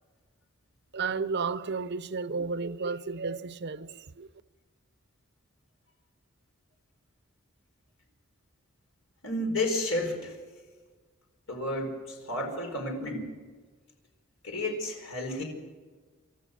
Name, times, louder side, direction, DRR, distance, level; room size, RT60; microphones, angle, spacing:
voice 1, 0.9-4.3, right 4 dB, 55° right, 0.7 m, -32 dB
voice 2, 9.2-10.4 11.5-13.3 14.4-15.4, left 1 dB, 85° left, 4.8 m, -31 dB
28.5 x 13.5 x 6.7 m
head